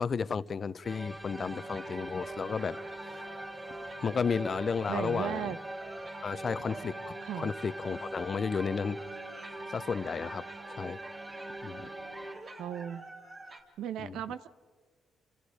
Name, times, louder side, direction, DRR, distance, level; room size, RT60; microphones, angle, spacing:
voice 1, 0.0-2.8 4.0-5.5 6.2-6.9 7.3-9.0 9.7-10.4 10.7-11.0 11.6-11.9 14.0-14.2, left 5 dB, 40° left, 0.7 m, -32 dB
sound 1, 0.8-12.3, right 1 dB, 10° right, 3.6 m, -42 dB
sound 2, 1.3-13.6, right 2 dB, 40° right, 3.4 m, -47 dB
voice 2, 4.9-5.6 7.2-7.5 12.6-13.1 13.8-14.5, right 9 dB, 80° right, 0.9 m, -36 dB
29.5 x 26.5 x 5.1 m
cardioid pair, 90°, 0 cm